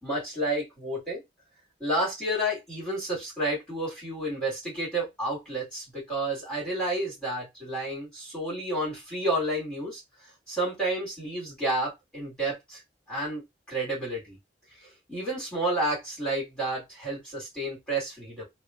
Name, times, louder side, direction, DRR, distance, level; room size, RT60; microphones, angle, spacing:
voice 1, 0.0-1.2 1.8-10.0 10.5-12.8 13.1-13.4 13.7-14.4 15.1-18.4, right 1 dB, 5° left, -7 dB, 2.1 m, -30 dB
3.5 x 2.4 x 2.5 m, 0.19 s
head